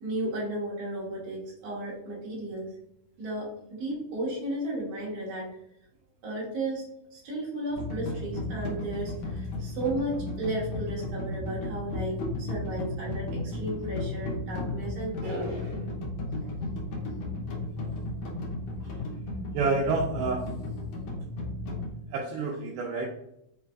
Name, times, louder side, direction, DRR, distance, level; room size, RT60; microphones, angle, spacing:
voice 1, 0.0-2.7 3.2-5.5 6.2-6.9 7.1-15.9, right 1 dB, 60° right, -4 dB, 1.9 m, -34 dB
sound 1, 7.7-21.9, left 2 dB, 75° left, 1.6 m, -34 dB
voice 2, 19.5-20.4 22.1-23.1, right 4 dB, 80° right, -1 dB, 2.1 m, -28 dB
5.8 x 2.4 x 2.3 m, 0.77 s
omnidirectional pair, 3.9 m